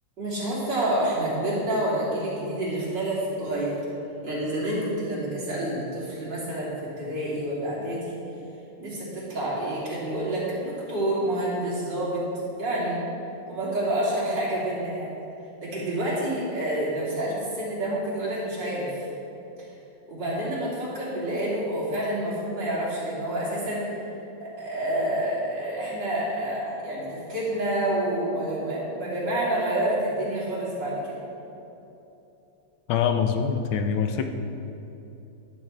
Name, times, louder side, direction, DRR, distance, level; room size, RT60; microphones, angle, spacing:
voice 1, 0.2-3.8 4.2-8.2 8.8-12.2 12.6-13.0 13.5-15.1 15.6-19.1 20.1-24.0 24.4-31.2, right 1 dB, 55° right, -7 dB, 3.5 m, -28 dB
voice 2, 32.9-34.3, left 7 dB, 75° left, 6 dB, 1.5 m, -24 dB
12.0 x 12.0 x 3.3 m, 2.9 s
omnidirectional pair, 2.3 m